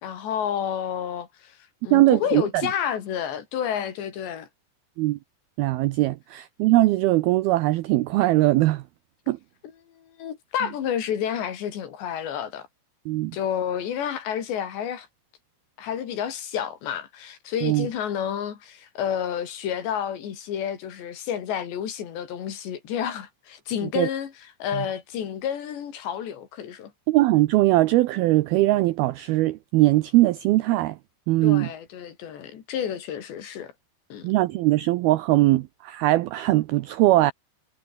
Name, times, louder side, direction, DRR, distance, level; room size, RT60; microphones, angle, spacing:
voice 1, 0.0-1.6 1.8-4.5 9.6-12.7 13.3-15.1 15.8-26.9 31.4-33.7 34.1-34.3, left 9 dB, 70° left, 5.1 m, -30 dB
voice 2, 1.9-2.4 5.0-5.2 5.6-8.8 9.3-9.4 13.1-13.4 17.6-17.9 24.0-24.1 24.7-24.8 27.1-31.0 31.3-31.7 34.2-37.3, right 17 dB, 80° right, 2.2 m, -20 dB
omnidirectional pair, 5.3 m